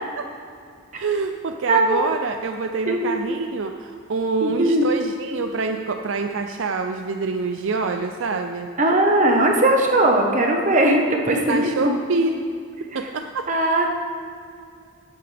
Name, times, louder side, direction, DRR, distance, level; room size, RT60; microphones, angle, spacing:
voice 1, 1.0-8.7 11.5-12.4 12.9-13.5, right 4 dB, 60° right, 6 dB, 0.5 m, -26 dB
voice 2, 1.7-2.0 2.9-3.2 4.4-4.9 8.8-11.9 13.5-13.9, right 1 dB, 35° right, 1 dB, 1.2 m, -19 dB
15.5 x 10.5 x 3.4 m, 2.3 s
head